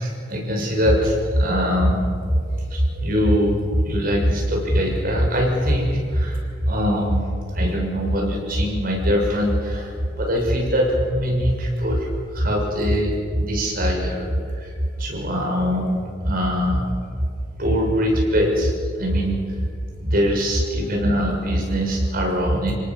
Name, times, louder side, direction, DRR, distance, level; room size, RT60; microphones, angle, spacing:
voice 1, 0.0-14.7 15.0-17.1 17.6-19.6 20.0-22.7, equal, 50° right, 0 dB, 6.4 m, -22 dB
29.5 x 18.5 x 7.5 m, 2.2 s
head